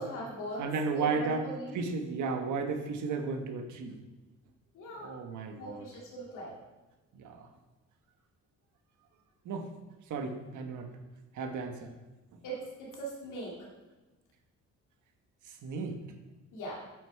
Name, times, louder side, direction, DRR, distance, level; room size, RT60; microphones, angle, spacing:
voice 1, 0.0-1.7 4.7-5.1 5.6-6.5 12.4-13.5 16.5-16.8, right 1 dB, 85° left, -4 dB, 2.2 m, -40 dB
voice 2, 0.6-1.5 1.7-4.0 4.9-5.9 7.1-7.5 9.4-9.7 10.1-10.9 11.3-11.9 12.3-12.4 15.5-16.0, right 4 dB, 75° right, 5 dB, 1.3 m, -34 dB
8.6 x 6.3 x 4.7 m, 1.2 s
cardioid pair, 90°, 30 cm